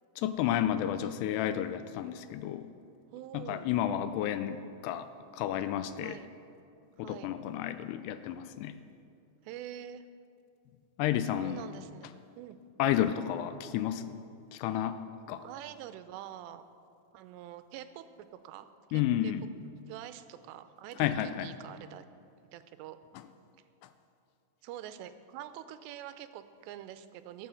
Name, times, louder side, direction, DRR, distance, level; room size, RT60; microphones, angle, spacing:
voice 1, 0.2-2.7 3.3-5.1 5.3-6.2 7.0-8.8 11.0-11.6 12.8-14.1 14.5-15.0 15.3-15.4 18.9-19.5 21.0-21.5, left 11 dB, 80° left, 11 dB, 2.6 m, -31 dB
voice 2, 3.1-3.7 6.0-6.3 7.0-7.3 9.4-10.1 11.3-12.1 12.4-12.6 15.4-16.6 17.1-19.3 19.9-22.0 22.5-23.0 24.6-27.5, right 11 dB, 90° right, 11 dB, 2.9 m, -45 dB
17.5 x 7.6 x 6.9 m, 2.6 s
omnidirectional pair, 4.9 m